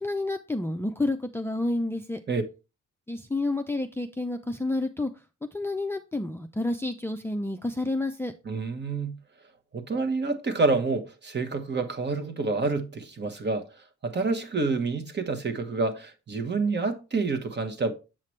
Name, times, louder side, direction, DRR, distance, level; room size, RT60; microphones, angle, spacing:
voice 1, 0.0-2.2 3.1-5.1 5.5-8.3, left 2 dB, 10° left, 0.5 m, -29 dB
voice 2, 8.4-9.2 9.7-17.9, right 3 dB, 35° right, 1.3 m, -28 dB
7.6 x 5.7 x 3.2 m
cardioid pair, 90°, 30 cm